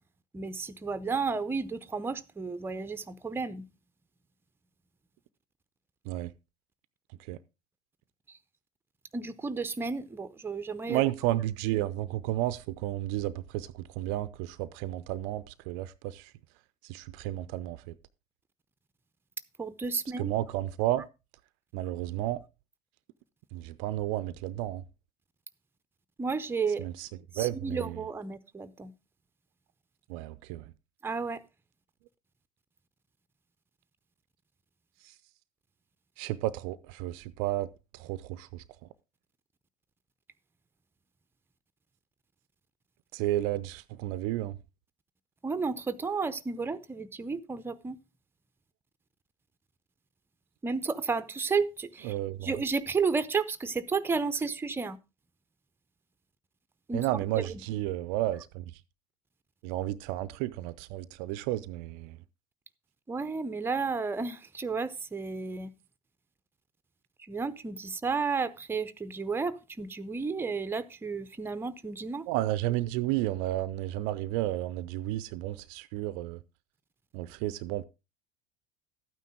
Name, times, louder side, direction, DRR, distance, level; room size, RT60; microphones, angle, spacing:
voice 1, 0.3-3.6 9.1-11.0 19.6-20.3 26.2-26.8 27.3-28.9 31.0-31.4 45.4-48.0 50.6-52.2 52.4-55.0 56.9-57.1 57.4-57.8 63.1-65.7 67.3-72.3, right 4 dB, 10° right, 0.7 m, -32 dB
voice 2, 10.9-13.7 14.0-16.3 16.9-17.9 20.2-21.0 21.7-22.4 23.5-24.8 26.8-27.1 27.4-28.0 30.1-30.6 36.2-37.7 37.9-38.6 43.1-44.5 52.0-52.6 56.9-58.6 59.6-62.2 72.3-76.4 77.1-77.8, right 15 dB, 50° right, 0.5 m, -32 dB
12.5 x 9.2 x 3.6 m
figure-of-eight pair, 70°, 19 cm